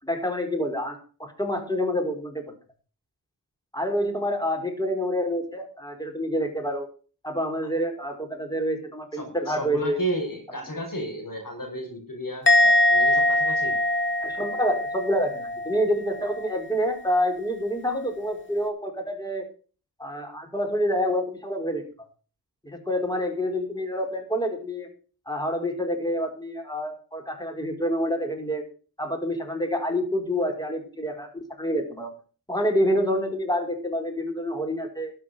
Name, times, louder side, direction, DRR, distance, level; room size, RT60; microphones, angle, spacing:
voice 1, 0.0-2.4 3.7-6.9 7.2-10.0 12.6-12.7 14.2-19.4 20.0-21.9 22.6-24.9 25.3-28.6 29.0-32.1 32.5-35.1, equal, 10° left, 4 dB, 4.8 m, -27 dB
voice 2, 9.1-12.5 12.9-13.8, right 1 dB, 55° left, 2 dB, 5.4 m, -32 dB
Musical instrument, 12.5-15.9 16.1-16.5, left 1 dB, 30° left, 1.8 m, -22 dB
13.0 x 7.5 x 7.9 m, 0.39 s
wide cardioid pair, 50°, 39 cm